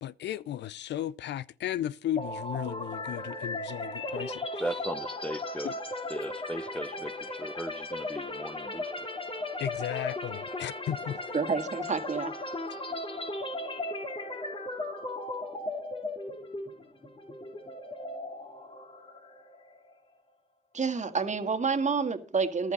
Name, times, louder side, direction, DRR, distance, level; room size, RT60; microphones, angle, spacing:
voice 1, 0.0-4.4 5.6-5.7 9.6-11.2, left 12 dB, 60° left, 0.5 m, -35 dB
sound 1, 2.2-19.9, left 2 dB, 25° left, 2.3 m, -37 dB
voice 2, 4.6-5.7 6.1-9.1, right 1 dB, 5° left, 1.0 m, -37 dB
voice 3, 11.3-12.3 20.7-22.7, right 5 dB, 35° right, 1.9 m, -29 dB
14.0 x 12.0 x 4.1 m
hypercardioid pair, 40°, 20 cm